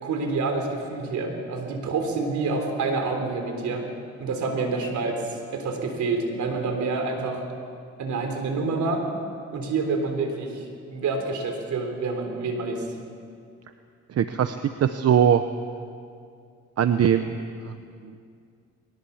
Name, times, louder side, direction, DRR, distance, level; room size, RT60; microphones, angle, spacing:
voice 1, 0.0-3.8 4.2-7.4 8.0-9.1 9.5-12.8, right 3 dB, 70° right, 4 dB, 3.9 m, -27 dB
voice 2, 14.1-15.4 16.8-17.3 17.6-17.7 18.0-18.1, right 9 dB, 55° right, 9 dB, 0.9 m, -21 dB
21.5 x 19.5 x 7.2 m, 2.3 s
cardioid pair, 90°, 30 cm